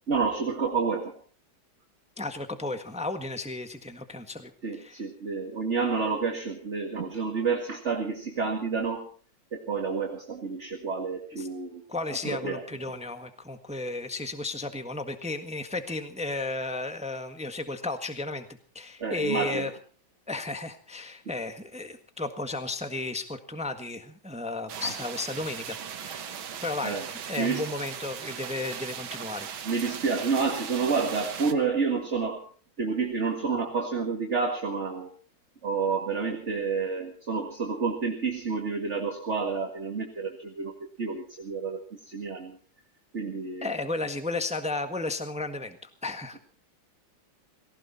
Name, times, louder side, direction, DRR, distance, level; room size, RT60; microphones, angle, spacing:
voice 1, 0.1-1.1 4.6-9.1 9.5-11.8 12.2-12.6 19.0-19.7 24.8-24.9 26.8-27.1 27.4-27.7 29.6-32.5 32.8-35.1 35.6-42.6 43.1-43.7, right 5 dB, 35° right, 3 dB, 2.3 m, -29 dB
voice 2, 2.2-4.5 4.8-5.0 11.4-11.5 11.9-18.5 18.7-19.7 20.3-27.0 27.3-29.5 43.6-46.4, left 2 dB, 5° right, 8 dB, 1.3 m, -34 dB
sound 1, 24.7-31.5, right 8 dB, 80° right, 2.1 m, -38 dB
19.0 x 17.5 x 4.3 m, 0.42 s
omnidirectional pair, 2.2 m